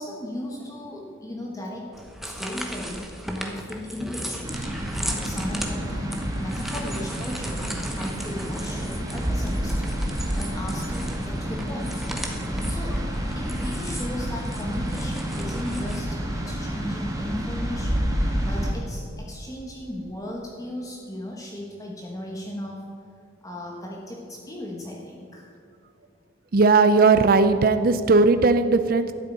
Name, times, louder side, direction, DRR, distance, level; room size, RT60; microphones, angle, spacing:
voice 1, 0.0-1.9 2.2-4.6 5.0-10.0 10.3-12.1 12.7-22.9 23.4-25.5, left 1 dB, 15° left, -1 dB, 1.2 m, -36 dB
sound 1, 1.9-16.0, equal, ahead, 1.0 m, -37 dB
sound 2, 4.4-18.7, equal, 15° right, 1.9 m, -29 dB
voice 2, 26.5-29.1, right 3 dB, 45° right, 10 dB, 0.5 m, -18 dB
12.0 x 6.7 x 9.1 m, 2.5 s
head